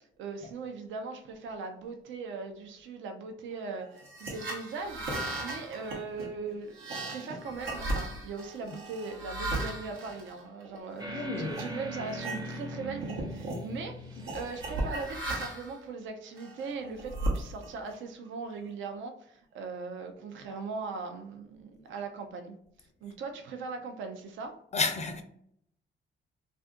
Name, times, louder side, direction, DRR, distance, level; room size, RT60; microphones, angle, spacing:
voice 1, 0.2-24.6, right 4 dB, 75° right, 0.5 m, -40 dB
sound 1, 4.0-11.0 11.5-11.7 12.1-12.7 13.0-13.6 14.2-15.8 16.4-17.9, right 1 dB, 90° right, 0.9 m, -36 dB
sound 2, 11.0-15.2, right 1 dB, 20° right, 0.6 m, -41 dB
voice 2, 11.1-11.6 14.2-14.3 24.7-25.2, left 4 dB, 35° left, 0.4 m, -31 dB
2.6 x 2.5 x 3.5 m
cardioid pair, 90°, 20 cm